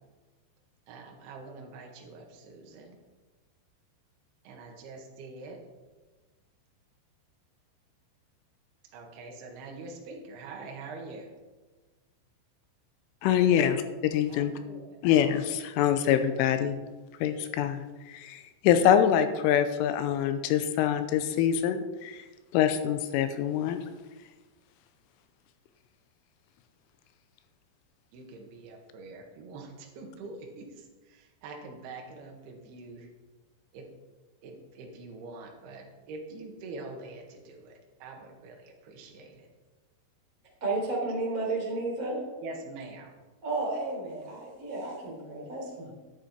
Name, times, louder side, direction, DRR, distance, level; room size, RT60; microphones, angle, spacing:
voice 1, 0.9-3.0 4.4-5.6 8.9-11.3 13.3-13.7 14.3-15.0 28.1-33.1 33.7-33.9 34.4-39.5 42.4-43.1, right 3 dB, 60° right, 1 dB, 3.2 m, -44 dB
voice 2, 13.2-14.5 15.0-16.8 17.2-22.3 22.5-23.9, left 9 dB, 85° left, 9 dB, 3.1 m, -25 dB
voice 3, 40.6-42.2 43.4-45.9, right 2 dB, 20° right, -4 dB, 3.3 m, -32 dB
13.0 x 10.0 x 4.4 m, 1.2 s
omnidirectional pair, 5.9 m